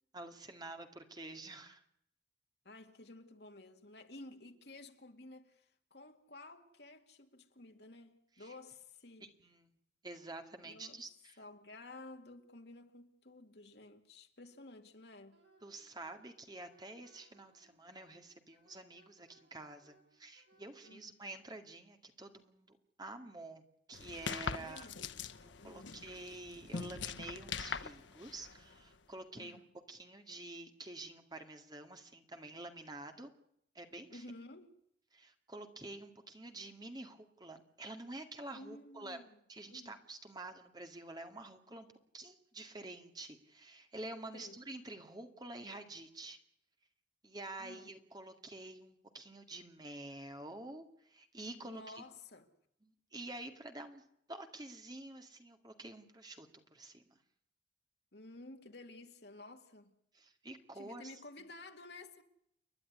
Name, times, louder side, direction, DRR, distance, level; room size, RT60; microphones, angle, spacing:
voice 1, 0.1-1.8 8.4-8.5 9.4-9.8 10.0-11.4 15.6-24.9 25.4-29.6 29.9-33.3 33.7-34.2 35.1-39.2 39.5-41.9 42.1-46.4 47.2-52.0 52.8-54.0 54.3-57.2 60.1-61.0, right 2 dB, 20° right, 2.1 m, -48 dB
voice 2, 2.6-9.3 10.6-11.0 11.4-15.4 20.8-21.2 24.5-25.0 25.6-25.9 29.3-29.7 34.1-34.8 38.5-39.4 39.7-40.0 44.3-44.6 47.6-48.0 51.6-52.5 58.1-59.9 60.7-62.2, left 2 dB, 60° left, 2.2 m, -53 dB
Wind instrument woodwind instrument, 15.3-21.0, right 2 dB, 65° right, 6.1 m, -69 dB
sound 1, 23.9-28.9, left 5 dB, 80° left, 1.0 m, -43 dB
30.0 x 11.0 x 9.7 m
head